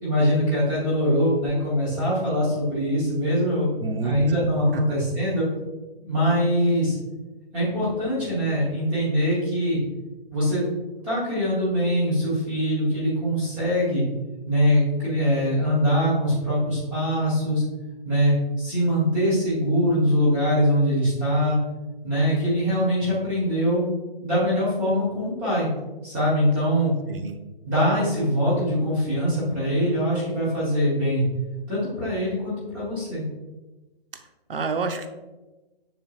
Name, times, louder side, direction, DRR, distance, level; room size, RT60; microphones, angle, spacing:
voice 1, 0.0-5.5 6.0-7.0 7.5-9.8 10.3-10.6 11.0-14.0 14.5-17.6 18.0-21.6 22.0-23.8 24.2-25.7 26.0-26.9 27.6-31.3 31.7-33.2, equal, 5° right, -9 dB, 0.9 m, -23 dB
voice 2, 3.8-4.2 4.7-4.8 27.1-27.4 34.5-35.1, right 4 dB, 65° right, 8 dB, 0.8 m, -28 dB
7.6 x 5.3 x 2.3 m, 1.1 s
hypercardioid pair, 170°, 30 cm